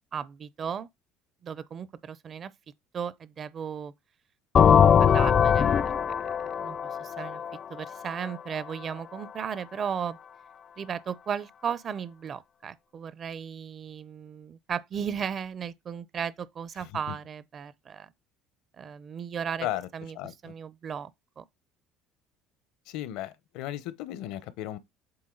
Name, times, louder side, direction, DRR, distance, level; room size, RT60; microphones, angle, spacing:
voice 1, 0.1-0.9 1.4-2.5 2.9-3.9 4.8-5.8 6.6-7.4 7.7-10.2 10.8-18.1 18.8-19.7 19.9-20.2 20.4-21.1 21.4-21.5, right 7 dB, 35° right, 0.5 m, -35 dB
sound 1, 4.5-8.3, left 8 dB, 35° left, 0.4 m, -21 dB
voice 2, 16.8-17.2 19.6-19.9 20.1-20.5 22.9-24.8, left 13 dB, 75° left, 0.8 m, -35 dB
7.8 x 3.7 x 3.8 m
cardioid pair, 135°, 0 cm